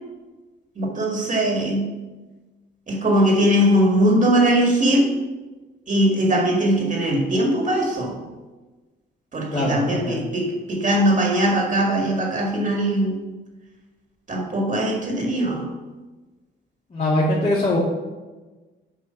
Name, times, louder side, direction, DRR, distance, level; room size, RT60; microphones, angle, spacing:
voice 1, 0.8-1.9 2.9-5.1 5.9-8.2 9.3-13.2 14.3-15.7, right 1 dB, 40° right, 0 dB, 1.9 m, -20 dB
voice 2, 9.5-10.2 16.9-17.8, left 1 dB, 35° left, -7 dB, 1.9 m, -22 dB
7.9 x 4.8 x 5.6 m, 1.2 s
cardioid pair, 90°, 20 cm